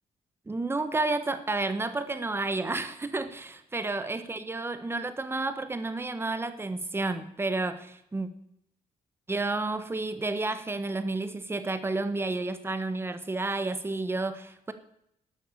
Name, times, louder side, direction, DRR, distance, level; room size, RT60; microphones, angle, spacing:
voice 1, 0.5-8.3 9.3-14.7, right 2 dB, 15° right, 11 dB, 1.2 m, -31 dB
11.5 x 9.2 x 8.3 m, 0.75 s
cardioid pair, 140°, 14 cm